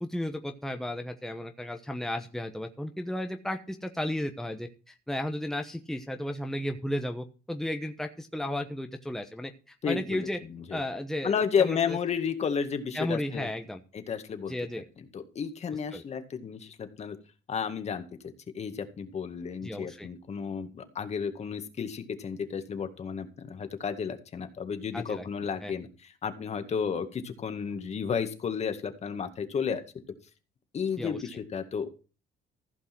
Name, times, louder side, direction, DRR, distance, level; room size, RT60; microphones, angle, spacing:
voice 1, 0.0-10.4 10.7-11.8 12.9-13.8 14.5-14.8 15.9-16.0 19.6-20.1 24.9-25.2 25.6-25.7 31.0-31.2, left 1 dB, ahead, 5 dB, 1.1 m, -34 dB
voice 2, 9.8-10.8 11.2-13.5 13.9-14.5 15.1-17.2 17.5-18.0 18.5-29.8 30.7-32.0, left 6 dB, 40° left, 8 dB, 2.0 m, -32 dB
15.5 x 5.4 x 6.1 m, 0.35 s
cardioid pair, 110°, 17 cm